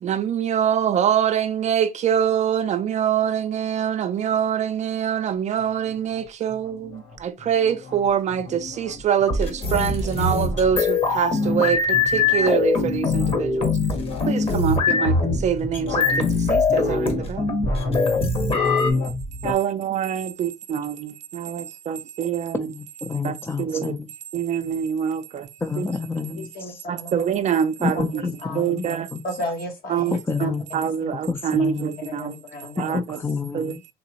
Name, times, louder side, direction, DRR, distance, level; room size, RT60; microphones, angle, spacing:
voice 1, 0.0-13.8 14.3-17.5 19.4-22.7 23.2-23.9 24.3-25.5 25.8-25.9 26.9-28.2 28.6-29.1 29.9-30.1 30.4-32.3 32.8-33.2 33.5-33.9, right 8 dB, 45° right, 0.4 m, -25 dB
sound 1, 5.6-19.5, left 2 dB, 85° left, 2.1 m, -32 dB
sound 2, 9.3-18.9, left 4 dB, 35° left, 1.1 m, -22 dB
voice 2, 22.5-24.1 25.6-26.8 27.8-28.8 29.1-29.2 30.1-30.7 31.3-32.0 32.8-33.9, left 4 dB, 15° left, 0.4 m, -29 dB
voice 3, 26.4-27.3 27.9-28.7 29.2-30.5 31.0-31.1 31.6-31.7 32.1-32.9, left 1 dB, 65° left, 1.3 m, -34 dB
3.7 x 2.9 x 2.8 m
cardioid pair, 110°, 17 cm